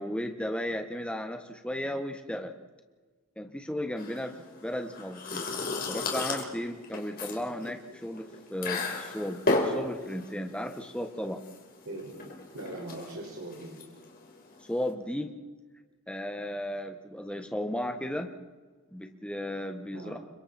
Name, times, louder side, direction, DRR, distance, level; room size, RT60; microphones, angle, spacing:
voice 1, 0.0-2.5 3.4-4.4 4.6-5.5 5.9-11.4 14.7-15.3 16.1-18.3 18.9-20.2, left 1 dB, 5° left, 5 dB, 1.5 m, -35 dB
sound 1, 4.0-14.9, left 3 dB, 45° left, 4.2 m, -34 dB
voice 2, 11.9-12.2 12.5-13.7 19.9-20.2, right 1 dB, 70° right, -2 dB, 5.6 m, -41 dB
30.0 x 25.0 x 4.4 m, 1.3 s
head